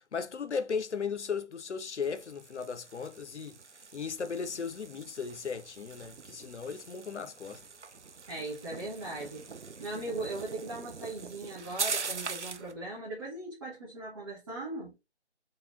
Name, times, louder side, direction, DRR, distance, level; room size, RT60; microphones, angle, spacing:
voice 1, 0.1-3.6 3.9-7.6, left 5 dB, 90° left, 0.6 m, -36 dB
sound 1, 2.0-12.7, right 5 dB, 90° right, 0.7 m, -42 dB
voice 2, 8.3-9.5 9.8-15.0, right 2 dB, 25° right, 1.1 m, -39 dB
4.5 x 3.2 x 2.6 m
figure-of-eight pair, 160°, 34 cm